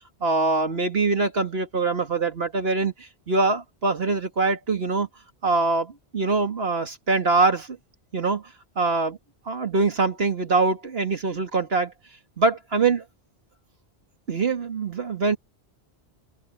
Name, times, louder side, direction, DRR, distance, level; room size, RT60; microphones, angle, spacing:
voice 1, 0.2-5.1 5.4-7.8 8.1-8.4 8.8-9.2 9.5-11.9 12.4-13.0 14.3-15.4, right 3 dB, 65° right, 2.3 m, -23 dB
omnidirectional pair, 1.1 m